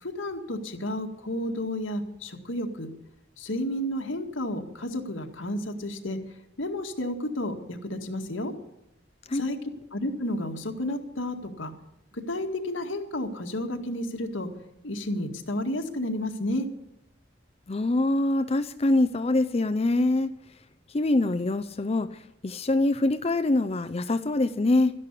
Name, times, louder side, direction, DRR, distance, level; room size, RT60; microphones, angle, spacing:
voice 1, 0.0-2.9 3.4-6.2 6.6-8.5 9.3-9.6 9.9-11.7 12.1-14.5 14.8-16.7, left 1 dB, 90° left, 4 dB, 2.0 m, -31 dB
voice 2, 17.7-20.3 20.9-24.9, left 2 dB, 30° left, 10 dB, 0.5 m, -24 dB
13.0 x 11.0 x 8.4 m, 0.84 s
head